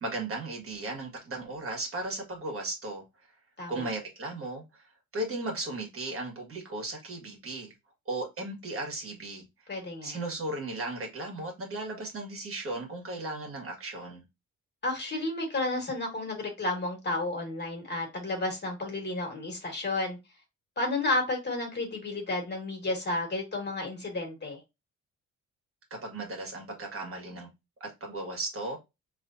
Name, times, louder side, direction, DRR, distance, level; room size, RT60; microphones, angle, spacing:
voice 1, 0.0-3.3 3.7-7.7 8.1-9.7 10.0-14.2 25.9-27.5 27.8-28.8, right 2 dB, 45° right, 1.7 m, -36 dB
voice 2, 9.7-10.2 14.8-20.2 20.8-24.6, left 2 dB, 35° left, 1.7 m, -32 dB
4.2 x 3.2 x 2.6 m
cardioid pair, 90°, 30 cm